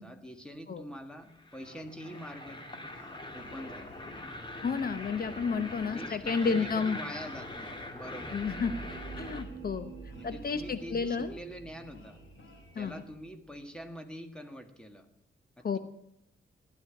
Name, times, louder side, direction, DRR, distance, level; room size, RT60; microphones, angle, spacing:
voice 1, 0.0-2.7 3.3-3.9 5.8-8.8 10.1-12.2 12.7-15.1 15.6-15.8, equal, 5° left, 5 dB, 1.7 m, -45 dB
sound 1, 1.3-9.4, left 2 dB, 25° left, 2.1 m, -43 dB
sound 2, 1.5-13.0, left 2 dB, 75° left, 4.8 m, -55 dB
voice 2, 4.6-7.0 8.3-8.8 9.2-9.9 10.2-11.3 12.7-12.9 15.6-15.8, left 5 dB, 50° left, 10 dB, 0.9 m, -31 dB
sound 3, 8.0-13.9, right 4 dB, 35° right, 3.2 m, -47 dB
15.5 x 12.0 x 7.7 m, 0.78 s
wide cardioid pair, 160°, 20 cm